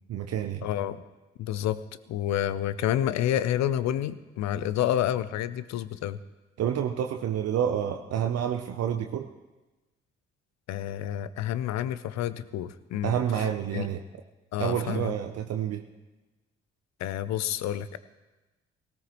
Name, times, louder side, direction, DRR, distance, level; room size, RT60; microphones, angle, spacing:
voice 1, 0.1-0.7 6.6-9.3 13.0-14.0 14.6-15.8, right 9 dB, 55° right, 5 dB, 0.8 m, -29 dB
voice 2, 0.6-1.0 1.4-1.8 2.1-6.2 10.7-13.2 13.7-13.9 14.5-15.1 17.0-18.0, left 11 dB, 65° left, 15 dB, 0.7 m, -29 dB
18.0 x 17.0 x 3.1 m, 1.1 s
hypercardioid pair, 45°, 30 cm